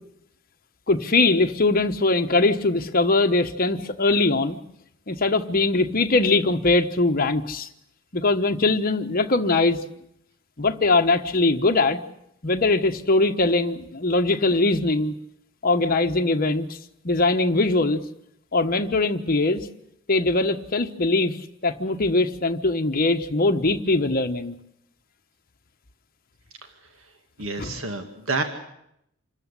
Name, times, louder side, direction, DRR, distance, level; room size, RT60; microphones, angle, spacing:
voice 1, 0.9-4.6 5.1-7.7 8.1-9.8 10.6-12.0 12.4-15.1 15.6-16.8 17.0-18.0 18.5-19.7 20.1-21.4 21.6-24.5 27.6-27.7, left 2 dB, 45° left, 5 dB, 1.3 m, -21 dB
voice 2, 27.4-28.4, right 3 dB, 75° right, 6 dB, 2.1 m, -28 dB
27.0 x 13.5 x 9.9 m, 0.78 s
head